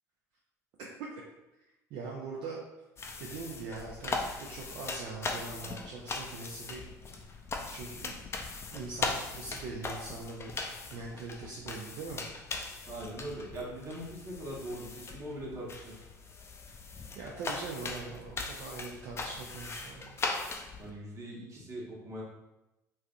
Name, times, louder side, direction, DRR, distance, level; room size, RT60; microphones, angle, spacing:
voice 1, 1.9-2.6 3.2-7.2 7.7-8.3 8.7-10.5 10.9-12.2 17.2-20.2 20.7-20.9, right 4 dB, 55° right, -2 dB, 0.5 m, -42 dB
sound 1, 3.0-20.9, left 3 dB, 30° left, 0.4 m, -39 dB
voice 2, 12.9-16.0 20.8-22.2, right 1 dB, 35° right, -3 dB, 1.1 m, -41 dB
3.2 x 2.6 x 2.4 m, 0.97 s
figure-of-eight pair, 65°, 9 cm